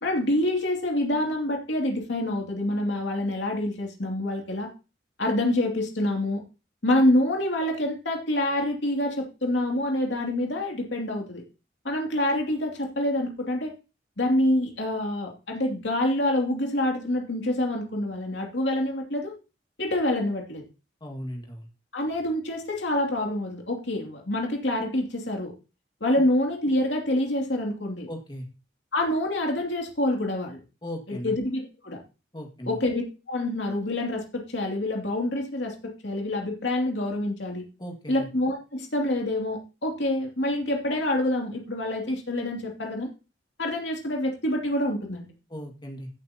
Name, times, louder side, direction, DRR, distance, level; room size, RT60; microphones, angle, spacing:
voice 1, 0.0-4.7 5.2-6.4 6.8-11.4 11.8-13.7 14.2-19.3 19.8-20.6 21.9-25.5 26.0-28.1 28.9-30.6 31.1-32.0 32.7-33.0 33.3-37.6 38.1-43.1 43.6-45.3, left 1 dB, 70° left, 1 dB, 2.7 m, -26 dB
voice 2, 21.0-21.7 28.1-28.5 30.8-31.3 32.3-32.8 37.8-38.3 45.5-46.1, equal, 25° left, 2 dB, 2.0 m, -37 dB
16.0 x 7.9 x 2.9 m, 0.31 s
head